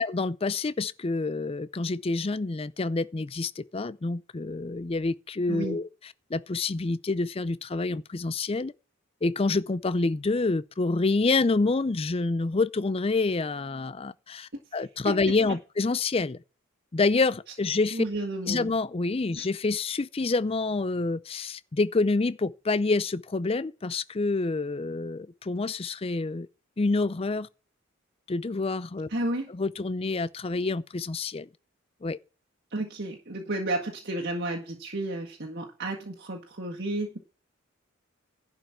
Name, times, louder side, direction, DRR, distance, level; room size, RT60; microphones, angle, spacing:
voice 1, 0.0-5.9 6.3-8.7 9.2-16.4 16.9-18.0 18.5-26.5 26.8-27.5 28.3-29.1 29.5-31.5 32.0-32.2, left 3 dB, 30° left, 0.5 m, -27 dB
voice 2, 5.5-5.8 15.1-15.3 17.9-18.7 19.4-19.5 29.1-29.5 32.7-37.2, right 1 dB, 50° right, 1.7 m, -32 dB
11.5 x 5.4 x 7.2 m
head